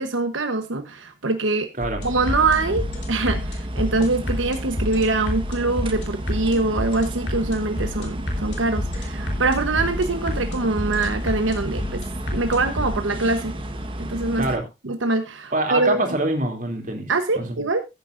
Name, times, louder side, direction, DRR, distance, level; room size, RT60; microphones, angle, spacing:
voice 1, 0.0-1.7 2.0-12.0 12.3-13.5 14.0-14.5 14.8-16.0 17.1-17.8, right 3 dB, 85° right, 1.1 m, -24 dB
sound 1, 1.8-12.9, left 1 dB, 60° left, 3.6 m, -31 dB
sound 2, 2.0-14.6, right 1 dB, 25° right, 1.3 m, -32 dB
voice 2, 15.5-17.1 17.4-17.6, right 2 dB, 45° right, 2.8 m, -24 dB
14.5 x 9.2 x 2.6 m
head